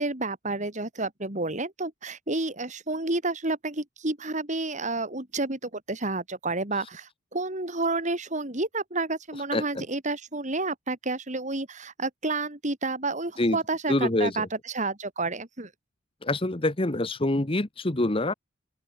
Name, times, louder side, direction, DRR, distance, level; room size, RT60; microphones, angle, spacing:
voice 1, 0.0-15.7, right 2 dB, 40° right, 3.5 m, -30 dB
voice 2, 13.9-14.5 16.2-18.3, left 1 dB, 30° left, 1.2 m, -25 dB
open air
head